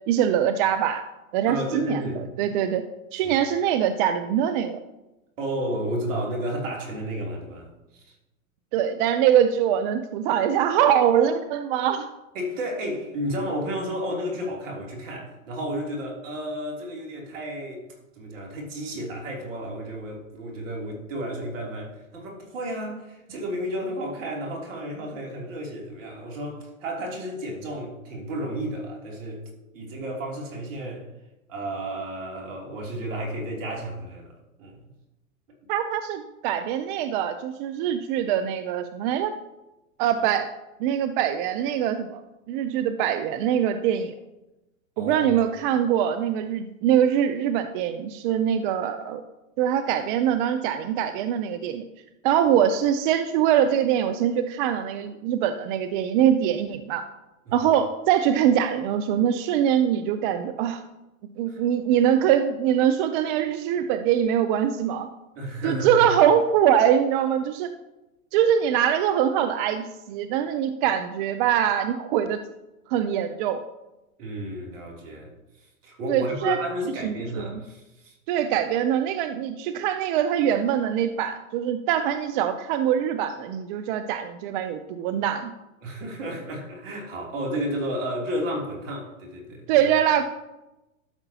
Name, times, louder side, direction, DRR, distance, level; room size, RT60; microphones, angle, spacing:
voice 1, 0.1-1.0 1.3-2.0 2.4-2.8 3.1-4.8 8.7-12.1 35.7-39.3 40.0-40.5 40.8-42.2 42.5-44.1 45.0-49.2 49.6-51.8 52.2-57.1 57.5-60.8 61.4-65.1 65.6-67.7 68.3-72.4 72.9-73.6 76.1-76.6 77.0-77.6 78.3-85.5 89.7-90.2, right 9 dB, 40° right, 9 dB, 0.5 m, -23 dB
voice 2, 1.5-2.2 3.2-3.4 5.4-8.1 12.3-17.8 18.2-29.4 29.7-31.0 31.5-34.3 34.6-34.9 45.0-45.3 57.5-57.7 61.5-61.6 65.3-66.0 74.2-75.3 75.8-78.1 85.8-89.9, equal, 65° right, -1 dB, 3.0 m, -32 dB
12.5 x 6.6 x 2.8 m, 0.97 s
hypercardioid pair, 115°, 41 cm